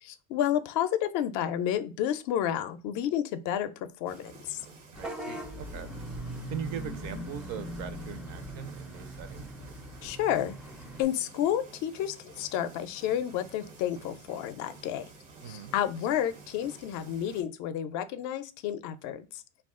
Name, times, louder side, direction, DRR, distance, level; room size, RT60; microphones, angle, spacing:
voice 1, 0.0-3.7 4.0-4.6 10.0-10.6 11.0-15.1 15.4-19.3, left 10 dB, 55° left, 0.4 m, -30 dB
sound 1, 4.1-17.4, right 3 dB, 85° right, 0.9 m, -52 dB
Vehicle horn car horn honking / Bus, 4.9-11.0, right 1 dB, ahead, 0.4 m, -40 dB
voice 2, 5.0-5.9 6.5-9.4 15.4-15.7, right 8 dB, 55° right, 0.5 m, -40 dB
2.3 x 2.3 x 3.6 m
supercardioid pair, 120°, 35 cm